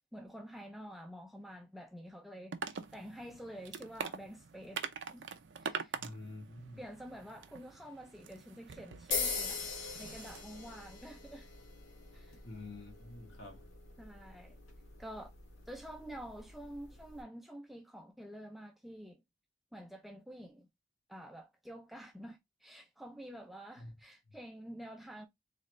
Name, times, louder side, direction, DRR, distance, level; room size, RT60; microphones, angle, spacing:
voice 1, 0.1-4.8 5.1-5.3 5.6-6.0 6.8-11.5 12.1-12.4 14.0-14.6 15.0-15.3 15.7-19.2 19.7-20.7 21.1-25.3, equal, ahead, 0.4 m, -48 dB
sound 1, 2.5-10.4, right 5 dB, 65° right, 0.6 m, -44 dB
voice 2, 5.9-6.8 12.4-13.6 23.8-23.9, left 2 dB, 65° left, 1.7 m, -48 dB
sound 2, 9.1-17.2, left 4 dB, 85° left, 1.5 m, -42 dB
3.9 x 3.1 x 3.1 m
head